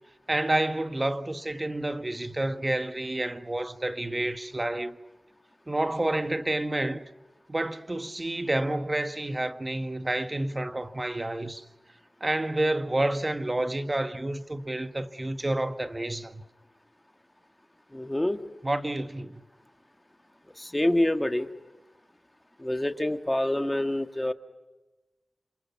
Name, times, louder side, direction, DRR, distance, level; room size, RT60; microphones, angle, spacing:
voice 1, 0.3-5.0 5.7-7.0 7.5-11.6 12.2-16.4 18.6-19.4, right 1 dB, 30° right, 1.5 m, -29 dB
voice 2, 17.9-18.4 20.6-21.5 22.6-24.3, left 1 dB, 15° left, 1.9 m, -26 dB
27.5 x 27.0 x 6.0 m
cardioid pair, 45°, 0 cm